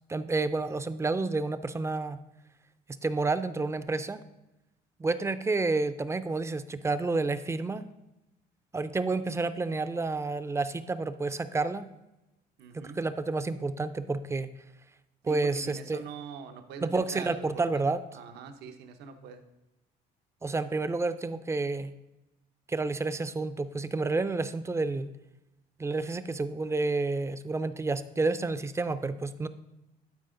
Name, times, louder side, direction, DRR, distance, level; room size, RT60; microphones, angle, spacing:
voice 1, 0.1-2.2 3.0-4.2 5.0-7.9 8.7-11.9 12.7-14.5 15.2-16.0 16.8-18.0 20.4-21.9 22.7-25.1 25.8-29.5, right 3 dB, 15° right, 12 dB, 0.4 m, -30 dB
voice 2, 12.6-13.0 15.3-17.5 17.7-17.8 18.1-19.4, right 6 dB, 80° right, 7 dB, 0.8 m, -43 dB
12.0 x 5.0 x 3.8 m, 0.95 s
cardioid pair, 110°, 17 cm